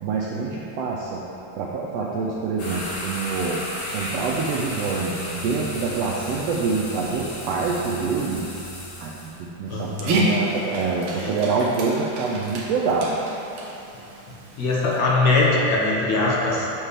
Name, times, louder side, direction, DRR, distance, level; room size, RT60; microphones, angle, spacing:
voice 1, 0.0-1.2 1.6-3.6 3.9-8.5 9.0-13.1, right 4 dB, 85° right, -3 dB, 1.4 m, -26 dB
sound 1, 2.6-9.4, left 1 dB, 85° left, 2.9 m, -34 dB
voice 2, 9.7-10.2 11.2-11.3 14.6-16.7, left 2 dB, 70° left, -5 dB, 2.2 m, -21 dB
Dog, 9.7-15.0, right 1 dB, 70° right, 1.3 m, -29 dB
7.3 x 6.6 x 3.3 m, 2.8 s
omnidirectional pair, 3.4 m